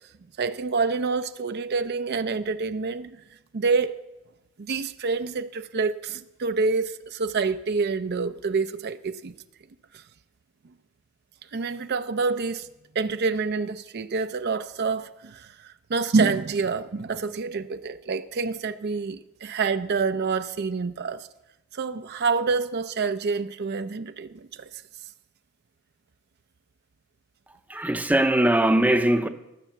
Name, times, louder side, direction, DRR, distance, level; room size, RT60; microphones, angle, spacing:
voice 1, 0.4-3.2 3.5-4.0 4.6-9.3 11.5-12.7 12.9-21.3 21.7-24.7, right 4 dB, 50° right, 0.5 m, -27 dB
voice 2, 27.7-29.3, right 1 dB, 10° right, 0.6 m, -21 dB
18.5 x 6.7 x 7.3 m
head